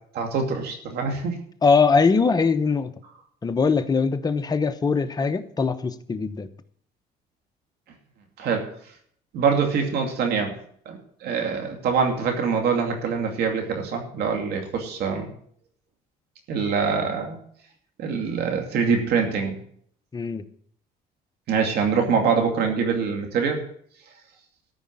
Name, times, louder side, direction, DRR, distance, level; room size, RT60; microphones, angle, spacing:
voice 1, 0.1-1.4 8.4-8.7 9.3-10.6 10.9-15.3 16.5-17.4 18.0-19.6 21.5-23.6, right 5 dB, 70° right, 3 dB, 2.5 m, -24 dB
voice 2, 1.6-2.9 3.4-6.5 20.1-20.4, left 5 dB, 25° left, 8 dB, 0.9 m, -21 dB
13.5 x 5.1 x 8.7 m, 0.63 s
cardioid pair, 110°, 17 cm